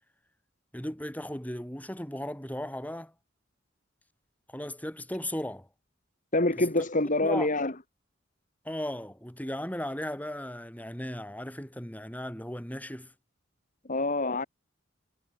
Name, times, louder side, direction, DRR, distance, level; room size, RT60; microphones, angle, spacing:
voice 1, 0.7-3.1 4.5-5.7 6.6-6.7 7.2-7.5 8.6-13.1, left 1 dB, 10° left, 5.8 m, -36 dB
voice 2, 6.3-7.7 13.9-14.4, left 2 dB, 40° left, 2.6 m, -26 dB
head